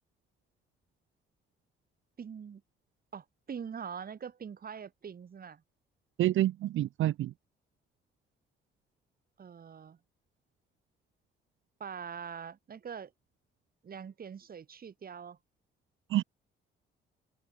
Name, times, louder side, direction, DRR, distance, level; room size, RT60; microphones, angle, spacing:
voice 1, 2.2-2.6 3.1-5.6 9.4-10.0 11.8-13.1 13.8-15.4, right 7 dB, 50° right, 5.0 m, -43 dB
voice 2, 6.2-7.3 16.1-16.2, right 14 dB, 80° right, 1.4 m, -28 dB
open air
cardioid pair, 90°, 20 cm